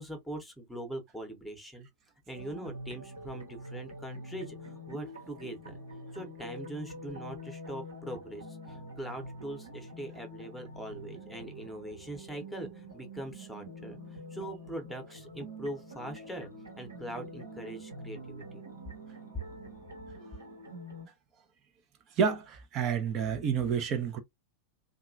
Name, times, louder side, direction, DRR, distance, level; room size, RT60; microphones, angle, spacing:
voice 1, 0.0-1.9 2.3-5.8 6.1-16.5 16.8-18.6, right 1 dB, ahead, 1.0 m, -42 dB
sound 1, 2.3-21.1, equal, 80° right, 1.2 m, -46 dB
voice 2, 22.2-24.2, right 7 dB, 35° right, 0.7 m, -29 dB
2.9 x 2.3 x 2.5 m
figure-of-eight pair, 90°, 0 cm